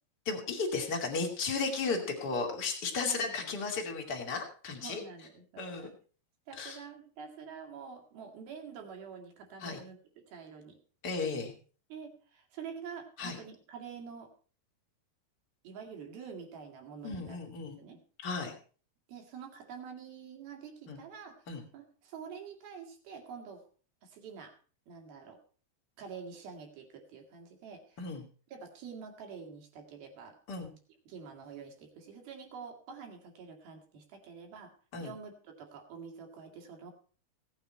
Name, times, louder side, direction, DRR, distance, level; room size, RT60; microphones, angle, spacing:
voice 1, 0.3-5.0 5.6-5.9 6.6-6.8 9.6-9.8 11.0-11.5 13.2-13.4 17.0-17.8 18.2-18.5 20.9-21.0 21.5-21.6 28.0-28.2 30.5-30.7 34.9-35.1, left 4 dB, 30° left, 1 dB, 2.4 m, -34 dB
voice 2, 4.8-5.9 6.5-10.8 11.9-14.3 15.6-17.4 17.8-18.0 19.1-21.5 21.7-23.6 24.0-24.5 24.9-25.4 26.0-28.0 28.5-30.4 31.1-34.7 35.0-36.9, right 6 dB, 70° right, 3 dB, 4.0 m, -47 dB
17.0 x 9.2 x 4.4 m, 0.40 s
omnidirectional pair, 4.5 m